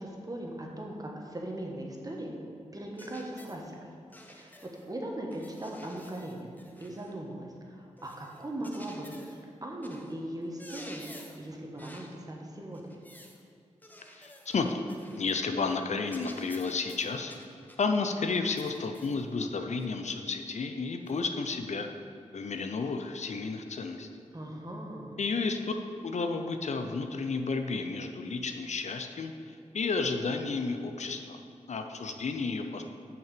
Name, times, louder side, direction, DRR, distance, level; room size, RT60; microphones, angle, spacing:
voice 1, 0.0-2.4 2.7-3.9 4.3-11.0 11.4-13.0 24.3-25.1, right 1 dB, 30° right, 0 dB, 1.4 m, -39 dB
sound 1, 3.0-3.6 4.1-4.9 5.3-7.2 8.0-9.4 9.8-10.1 10.4-11.5 11.8-12.2 12.7-13.4 13.8-15.4 15.7-15.8 16.1-17.9 18.6-19.2 19.8-19.9 21.1-21.2, left 1 dB, 15° left, 0.9 m, -51 dB
voice 2, 14.1-14.8 15.2-17.3 17.8-21.9 22.3-24.1 25.2-25.7 26.0-31.4 31.7-32.8, left 4 dB, 65° left, 6 dB, 0.6 m, -32 dB
6.3 x 5.9 x 6.7 m, 2.4 s
cardioid pair, 65°, 12 cm